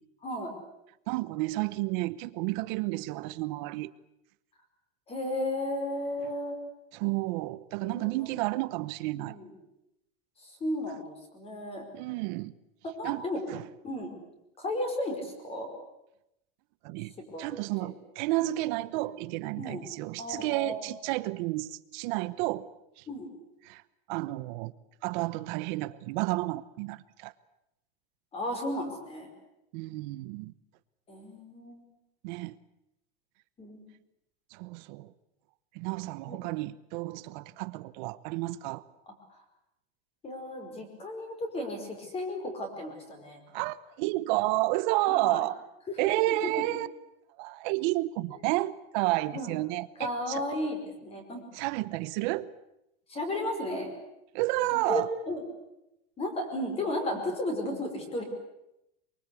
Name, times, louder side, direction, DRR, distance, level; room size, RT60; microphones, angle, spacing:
voice 1, 0.2-0.5 5.1-6.6 7.8-8.3 9.1-9.5 10.4-11.8 12.8-13.4 13.8-14.2 14.6-15.7 17.2-17.5 17.8-17.9 19.6-19.8 20.2-20.9 23.1-23.3 28.3-29.3 31.1-31.9 33.6-33.8 36.3-36.4 40.2-43.4 45.1-45.4 45.9-46.3 49.3-49.6 50.0-51.4 53.1-53.9 54.7-55.4 56.2-58.2, left 1 dB, 20° left, 5.0 m, -34 dB
voice 2, 1.1-3.9 6.9-9.4 11.9-12.5 13.0-13.6 16.8-17.1 17.4-22.7 23.0-23.1 23.6-23.8 24.1-24.7 25.0-27.3 29.7-30.5 32.2-32.6 34.5-35.1 35.7-38.8 43.5-45.6 46.0-46.9 47.4-50.4 51.5-52.5 54.3-55.1, right 19 dB, 50° right, 1.0 m, -31 dB
24.0 x 23.5 x 8.3 m
supercardioid pair, 160°, 31 cm